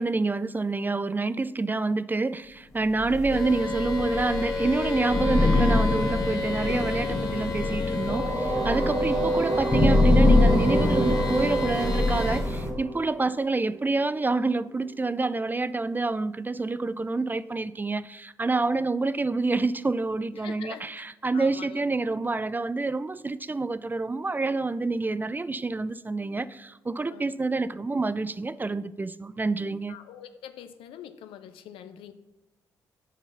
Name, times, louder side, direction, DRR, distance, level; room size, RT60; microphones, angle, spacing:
voice 1, 0.0-30.0, right 3 dB, 20° right, 15 dB, 0.3 m, -27 dB
Thunder / Rain, 3.0-12.7, left 2 dB, 30° left, 1.3 m, -25 dB
sound 1, 3.3-12.4, left 4 dB, 45° left, 1.7 m, -33 dB
sound 2, 8.1-13.8, right 2 dB, 45° right, 2.0 m, -29 dB
voice 2, 20.3-20.8 21.3-21.8 27.1-27.3 29.9-32.1, left 10 dB, 75° left, 10 dB, 0.6 m, -44 dB
7.3 x 3.9 x 5.6 m, 1.1 s
hypercardioid pair, 45°, 9 cm